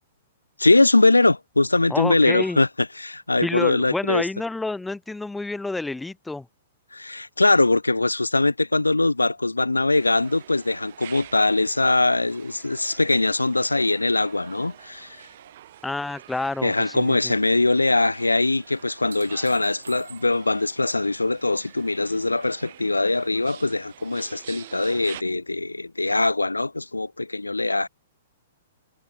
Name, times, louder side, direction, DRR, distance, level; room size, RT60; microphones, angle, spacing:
voice 1, 0.6-4.2 6.9-15.2 16.6-27.9, left 2 dB, 80° left, 1.2 m, -22 dB
voice 2, 1.9-2.6 3.4-6.5 15.8-17.3, left 2 dB, 5° left, 0.7 m, -29 dB
sound 1, 9.9-25.2, right 13 dB, 50° right, 6.0 m, -47 dB
sound 2, 12.2-15.7 16.0-16.7 18.7-20.6 23.2-23.3, right 5 dB, 70° right, 5.4 m, -50 dB
figure-of-eight pair, 110°, 0 cm